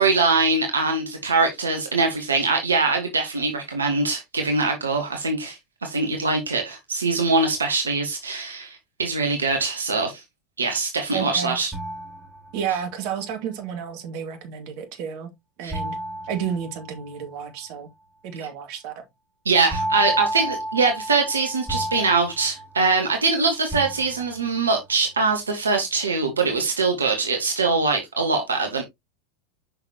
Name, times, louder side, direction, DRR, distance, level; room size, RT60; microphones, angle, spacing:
voice 1, 0.0-10.1 10.6-11.7 15.6-15.8 19.4-28.8, right 4 dB, 80° right, 1.5 m, -23 dB
voice 2, 11.1-11.6 12.5-15.3 15.6-16.0 16.3-17.9 18.2-19.0, right 8 dB, 50° right, 2.1 m, -31 dB
sound 1, 11.7-12.9 15.7-17.3 19.7-23.3 23.7-24.6, right 1 dB, 5° right, 3.7 m, -31 dB
6.7 x 5.9 x 2.9 m
figure-of-eight pair, 85°, 0 cm